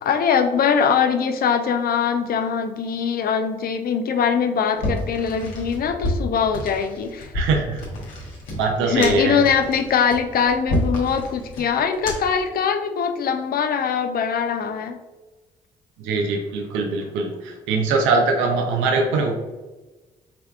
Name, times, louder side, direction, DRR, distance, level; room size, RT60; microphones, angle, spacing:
voice 1, 0.0-7.3 8.8-15.0, left 7 dB, 45° left, 7 dB, 0.5 m, -22 dB
sound 1, 4.8-12.4, left 1 dB, 70° left, 1.0 m, -30 dB
voice 2, 7.3-7.8 8.5-9.4 16.0-19.3, right 3 dB, 70° right, 3 dB, 0.6 m, -22 dB
4.8 x 3.3 x 2.3 m, 1.2 s
hypercardioid pair, 40°, 21 cm